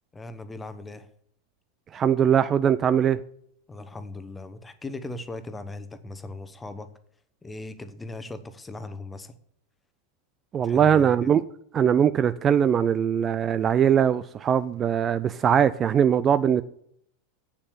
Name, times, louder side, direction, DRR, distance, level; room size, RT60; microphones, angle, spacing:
voice 1, 0.1-1.1 3.7-6.9 7.4-9.4 10.6-11.4, left 2 dB, 10° left, 1.0 m, -38 dB
voice 2, 1.9-3.2 10.5-11.4 11.7-16.6, right 8 dB, 25° right, 0.4 m, -21 dB
8.6 x 7.1 x 6.9 m
figure-of-eight pair, 85°, 0 cm